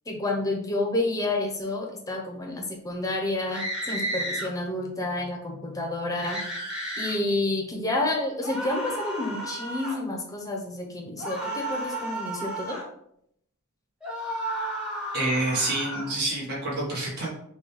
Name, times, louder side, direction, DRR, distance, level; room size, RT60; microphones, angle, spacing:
voice 1, 0.1-6.4 7.0-12.8, left 2 dB, 15° left, 1 dB, 0.7 m, -29 dB
sound 1, 3.5-4.5 6.2-7.2 8.4-10.0 11.2-12.9 14.0-16.1, right 1 dB, 5° right, 1.0 m, -33 dB
voice 2, 15.1-17.3, right 2 dB, 45° right, -5 dB, 1.1 m, -27 dB
5.9 x 2.3 x 3.1 m, 0.72 s
head